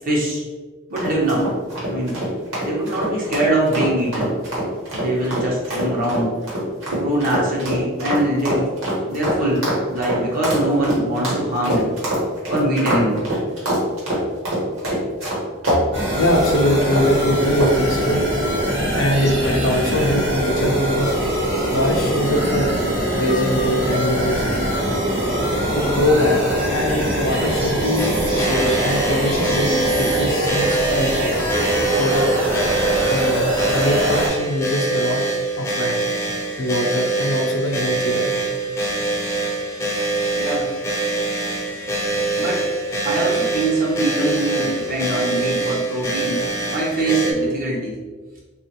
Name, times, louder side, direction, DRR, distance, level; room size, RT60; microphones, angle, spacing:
voice 1, 0.0-0.4 0.9-1.5 1.9-2.2 2.6-4.3 4.9-6.3 6.9-8.7 9.1-9.6 9.9-11.9 12.5-13.3 40.3-40.7 42.4-42.7 43.0-48.0, right 1 dB, 45° right, -4 dB, 0.8 m, -23 dB
sound 1, 1.0-15.8 16.2-16.4 16.9-17.2 17.6-17.9, right 1 dB, 80° right, 1.2 m, -24 dB
sound 2, 15.9-34.3, right 1 dB, 60° right, 1.1 m, -22 dB
voice 2, 16.2-18.2 18.9-21.2 21.7-22.7 23.1-24.5 25.7-26.4 26.7-31.1 31.9-32.2 33.1-35.2 35.6-36.0 36.6-38.3, left 1 dB, 70° left, 1 dB, 0.5 m, -22 dB
sound 3, 28.0-47.3, right 2 dB, 15° left, 0.4 m, -24 dB
3.0 x 2.4 x 2.9 m, 1.3 s
head